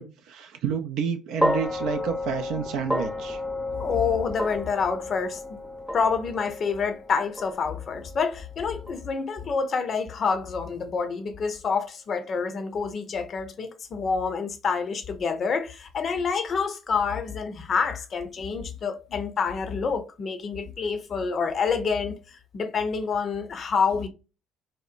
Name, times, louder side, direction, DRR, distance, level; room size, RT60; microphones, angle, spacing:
voice 1, 0.0-3.4, right 6 dB, 70° right, 0.3 m, -30 dB
sound 1, 1.4-9.7, left 1 dB, ahead, 0.6 m, -32 dB
voice 2, 3.8-5.6 5.9-24.1, left 5 dB, 50° left, 0.5 m, -27 dB
2.8 x 2.0 x 2.4 m
hypercardioid pair, 50°, 0 cm